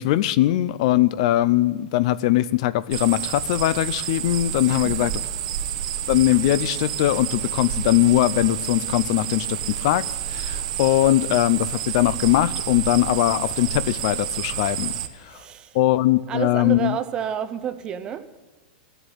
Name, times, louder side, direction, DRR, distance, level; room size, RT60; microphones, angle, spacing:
voice 1, 0.0-5.1 6.1-15.4 15.7-17.0, left 15 dB, 40° left, 17 dB, 0.3 m, -21 dB
sound 1, 2.9-15.1, right 11 dB, 45° right, 0.8 m, -29 dB
voice 2, 4.7-5.1 15.2-15.8 16.3-18.3, right 9 dB, 15° right, 11 dB, 0.5 m, -30 dB
13.5 x 8.0 x 10.0 m, 1.2 s
supercardioid pair, 175°, 5 cm